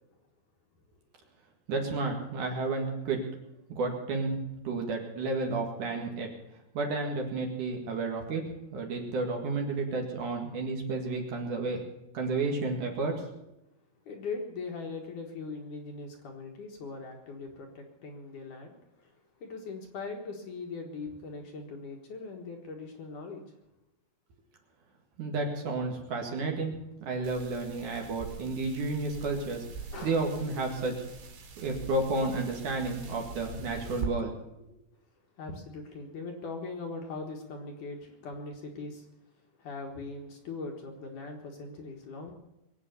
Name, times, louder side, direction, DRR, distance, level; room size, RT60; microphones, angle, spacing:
voice 1, 1.7-3.2 3.7-4.4 4.6-6.3 6.7-8.4 8.7-11.8 12.1-13.1 25.2-26.8 27.1-29.6 30.0-30.9 31.6-34.4, right 3 dB, 55° right, 2 dB, 3.0 m, -31 dB
voice 2, 14.1-19.1 19.4-23.4 27.2-27.3 29.9-30.2 35.4-39.1 39.6-42.3, left 3 dB, 60° left, 2 dB, 2.7 m, -40 dB
sound 1, 27.2-34.1, right 4 dB, 80° right, 4.8 m, -43 dB
22.5 x 8.6 x 7.0 m, 0.93 s
omnidirectional pair, 4.7 m